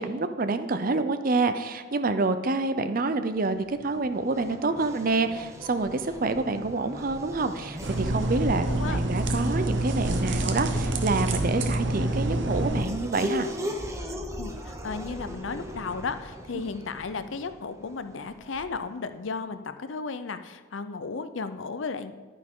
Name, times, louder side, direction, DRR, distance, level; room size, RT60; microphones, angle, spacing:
voice 1, 0.0-13.5, right 3 dB, 45° right, 10 dB, 0.5 m, -27 dB
Race car auto racing / Accelerating revving vroom, 3.3-18.9, equal, 15° right, 0.8 m, -39 dB
sound 1, 7.8-12.8, right 1 dB, 60° right, 0.9 m, -27 dB
voice 2, 8.7-9.0 14.3-22.3, left 4 dB, 65° left, 11 dB, 0.6 m, -34 dB
11.0 x 9.7 x 3.7 m, 1.4 s
head